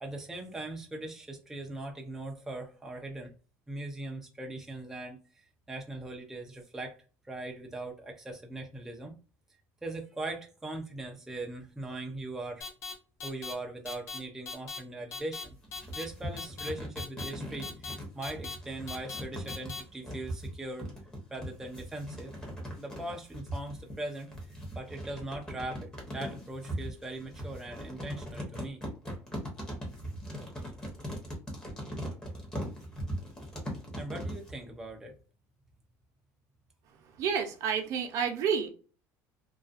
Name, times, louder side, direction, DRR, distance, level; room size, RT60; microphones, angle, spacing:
voice 1, 0.0-3.3 3.7-5.2 5.7-7.0 7.2-9.1 9.8-12.6 13.2-15.6 15.9-20.9 21.3-22.3 22.8-24.3 24.8-28.8 33.9-35.2, right 2 dB, 5° right, 0.4 m, -40 dB
sound 1, 12.6-12.9 13.2-13.5 13.9-14.2 14.5-14.8 15.1-15.4 15.7-16.0 16.4-16.7 17.0-17.3 17.6-17.9 18.2-18.6 18.9-19.2 19.5-19.8, left 4 dB, 55° left, 0.7 m, -39 dB
sound 2, 15.4-34.5, equal, 10° left, 0.8 m, -40 dB
voice 2, 37.2-38.7, right 7 dB, 60° right, 0.6 m, -29 dB
2.4 x 2.2 x 2.4 m
cardioid pair, 145°, 6 cm